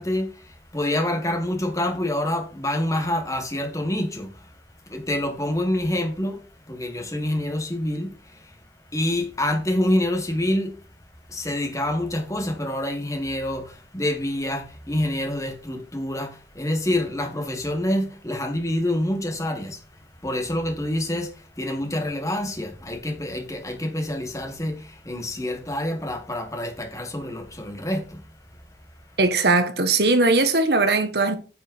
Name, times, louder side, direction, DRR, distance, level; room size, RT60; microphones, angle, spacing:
voice 1, 0.0-4.6 4.8-8.6 8.9-10.8 11.3-28.6, left 1 dB, 20° left, 1.5 m, -27 dB
voice 2, 29.2-31.4, right 3 dB, 70° right, 1.5 m, -19 dB
9.5 x 5.4 x 4.5 m
head